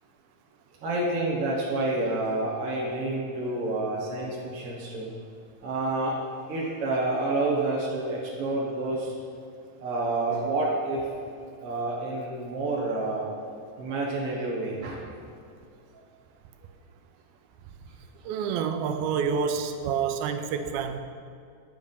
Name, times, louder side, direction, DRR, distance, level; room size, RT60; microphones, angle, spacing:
voice 1, 0.8-5.1 5.6-9.1 9.8-11.1 11.6-13.3 13.8-15.0, right 2 dB, 55° right, -5 dB, 1.9 m, -29 dB
voice 2, 18.2-21.0, right 6 dB, 90° right, 8 dB, 2.5 m, -28 dB
11.5 x 7.1 x 5.5 m, 2.4 s
omnidirectional pair, 4.2 m